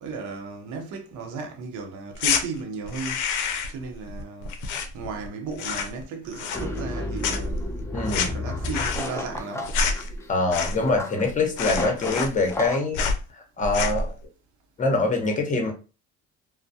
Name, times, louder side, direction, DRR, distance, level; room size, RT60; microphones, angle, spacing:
voice 1, 0.0-3.2 3.7-4.5 4.9-7.6 8.3-9.8, right 4 dB, 75° right, 0.7 m, -35 dB
sound 1, 2.1-2.4 2.9-3.8 4.1-5.3 5.5-6.0 6.3-7.0 7.2-11.0 11.3-11.4 11.6-12.7 12.9-13.2 13.6-14.1, left 5 dB, 80° left, 0.5 m, -27 dB
sound 2, 6.5-12.8, left 2 dB, 10° left, 0.3 m, -33 dB
voice 2, 7.9-8.4 10.3-13.0 13.3-14.1 14.8-15.7, left 3 dB, 25° left, 0.8 m, -24 dB
2.2 x 2.1 x 2.6 m
cardioid pair, 90°, 30 cm